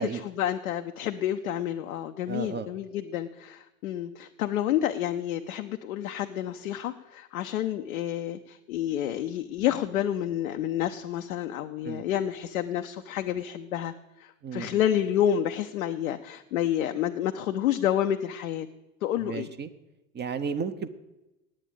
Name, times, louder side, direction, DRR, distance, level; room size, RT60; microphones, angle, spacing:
voice 1, 0.4-13.9 14.2-18.7 19.0-19.5, left 11 dB, 75° left, 6 dB, 0.7 m, -29 dB
voice 2, 2.3-2.7 11.8-12.0 14.4-14.8 19.2-19.7 20.1-20.9, right 6 dB, 25° right, 10 dB, 0.8 m, -33 dB
9.0 x 8.7 x 8.8 m, 0.98 s
hypercardioid pair, 75°, 42 cm